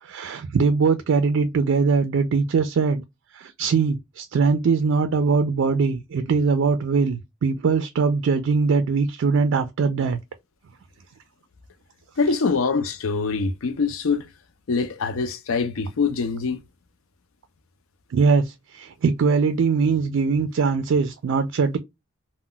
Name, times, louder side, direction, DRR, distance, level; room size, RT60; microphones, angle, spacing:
voice 1, 0.0-3.0 3.3-10.2 18.1-21.8, right 5 dB, 65° right, 0.3 m, -21 dB
voice 2, 12.2-14.3 14.7-16.6, left 4 dB, 75° left, 0.5 m, -24 dB
2.2 x 2.1 x 3.7 m
head